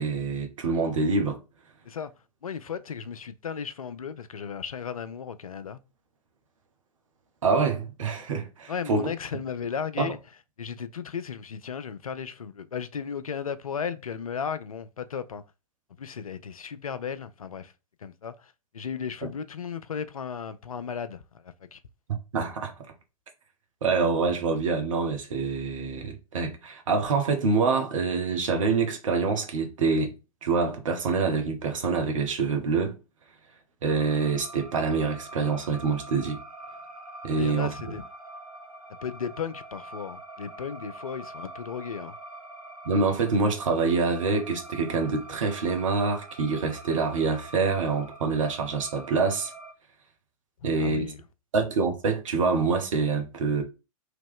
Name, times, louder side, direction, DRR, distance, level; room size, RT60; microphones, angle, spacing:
voice 1, 0.0-1.4 7.4-9.1 10.0-10.1 19.2-19.3 22.3-22.7 23.8-30.1 30.4-33.0 33.8-36.4 37.2-37.9 42.8-49.5 50.6-51.1 51.5-53.6, right 4 dB, 60° right, 0.9 m, -26 dB
voice 2, 2.4-5.8 8.7-10.2 10.6-15.4 16.0-17.7 18.0-21.8 37.4-38.0 39.0-42.2 50.8-51.2, left 7 dB, 75° left, 0.4 m, -35 dB
sound 1, 33.8-49.7, right 2 dB, 85° right, 0.6 m, -44 dB
3.1 x 2.9 x 3.4 m
figure-of-eight pair, 100°, 18 cm